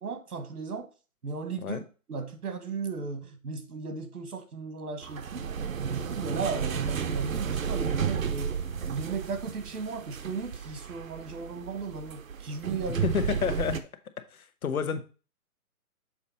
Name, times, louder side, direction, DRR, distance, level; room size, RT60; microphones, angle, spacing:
voice 1, 0.0-0.9 1.2-1.8 2.1-5.5 5.8-8.6 8.9-13.1, right 4 dB, 85° right, 1.7 m, -36 dB
sound 1, 5.0-13.8, right 7 dB, 65° right, 0.8 m, -33 dB
voice 2, 12.9-13.8 14.3-15.0, left 7 dB, 70° left, 1.1 m, -30 dB
7.2 x 4.3 x 4.1 m
hypercardioid pair, 180°, 44 cm